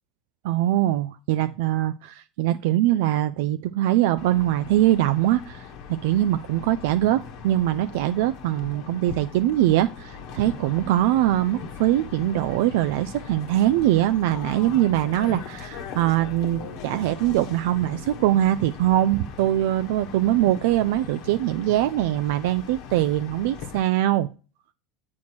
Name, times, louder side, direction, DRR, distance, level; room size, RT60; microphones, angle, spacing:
voice 1, 0.4-24.3, right 13 dB, 70° right, 11 dB, 0.3 m, -22 dB
sound 1, 4.2-23.8, left 6 dB, 65° left, 1.1 m, -40 dB
7.1 x 4.4 x 4.4 m, 0.34 s
hypercardioid pair, 85°, 0 cm